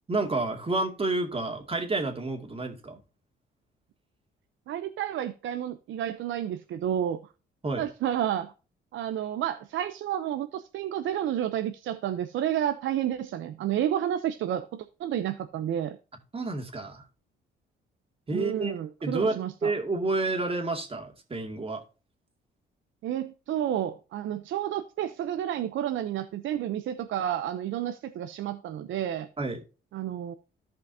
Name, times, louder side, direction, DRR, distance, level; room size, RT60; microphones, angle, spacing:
voice 1, 0.1-3.0 7.6-7.8 16.3-17.0 18.3-21.8 29.4-29.6, right 2 dB, 30° right, 2.3 m, -30 dB
voice 2, 4.7-7.2 7.8-8.5 8.9-16.0 18.3-19.7 23.0-29.3 29.9-30.3, right 11 dB, 75° right, 0.7 m, -30 dB
14.0 x 5.2 x 2.8 m
cardioid pair, 90°, 20 cm